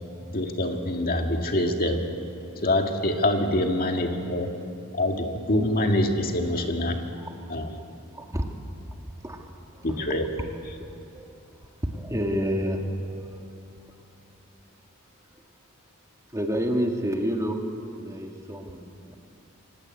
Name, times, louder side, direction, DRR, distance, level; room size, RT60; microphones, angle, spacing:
voice 1, 0.3-2.0 2.6-4.5 4.9-7.0 7.5-7.7 9.8-10.3, left 1 dB, 45° left, 3 dB, 2.0 m, -25 dB
voice 2, 7.2-7.5 8.1-8.5 9.2-9.9 10.8-11.2 11.5-13.5 16.3-17.7 18.0-18.9, equal, 15° right, 3 dB, 1.8 m, -30 dB
26.5 x 17.0 x 9.6 m, 2.7 s
head